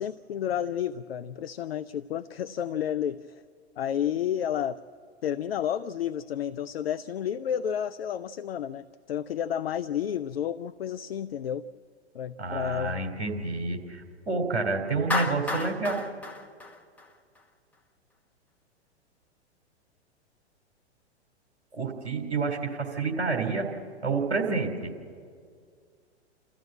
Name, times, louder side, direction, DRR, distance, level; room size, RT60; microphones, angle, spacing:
voice 1, 0.0-3.4 3.8-4.8 5.2-11.7 12.1-13.0, left 9 dB, 60° left, 14 dB, 0.5 m, -31 dB
voice 2, 12.4-16.0 21.7-23.7 24.0-24.9, right 3 dB, 70° right, 2 dB, 3.2 m, -29 dB
Clapping, 15.1-17.4, left 2 dB, 5° left, 1.2 m, -32 dB
28.5 x 14.0 x 7.5 m, 2.1 s
figure-of-eight pair, 105°, 34 cm